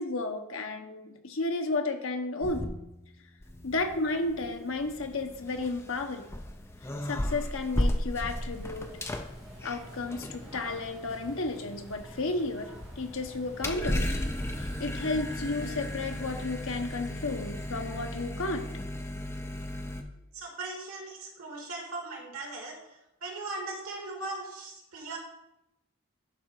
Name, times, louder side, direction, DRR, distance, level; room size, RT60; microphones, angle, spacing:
voice 1, 0.0-2.7 3.6-6.2 7.0-8.9 9.6-12.7 13.0-14.3 14.6-18.6, left 3 dB, 75° left, 5 dB, 1.0 m, -32 dB
sound 1, 2.4-3.2 3.4-20.0, left 1 dB, 10° left, 0.5 m, -36 dB
sound 2, 8.3-18.1, right 1 dB, 15° right, 1.8 m, -49 dB
voice 2, 20.3-25.2, right 2 dB, 90° right, 0 dB, 2.2 m, -39 dB
11.5 x 3.8 x 4.5 m, 0.87 s
head